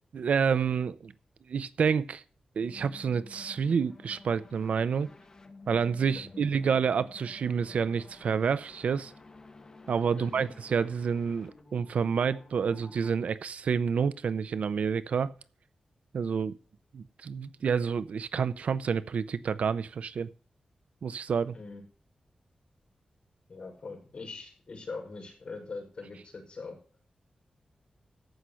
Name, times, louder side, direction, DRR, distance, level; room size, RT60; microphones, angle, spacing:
voice 1, 0.1-1.1 1.5-2.2 2.6-5.1 5.7-9.1 9.9-15.3 16.1-16.6 16.9-20.3 21.0-21.5, right 6 dB, 80° right, 0.5 m, -28 dB
sound 1, 2.6-13.2, left 3 dB, 30° left, 1.4 m, -52 dB
voice 2, 6.1-6.5 10.2-10.5 21.5-21.8 23.5-26.8, left 3 dB, 50° left, 5.6 m, -42 dB
14.5 x 5.7 x 6.3 m
wide cardioid pair, 165°, 2 cm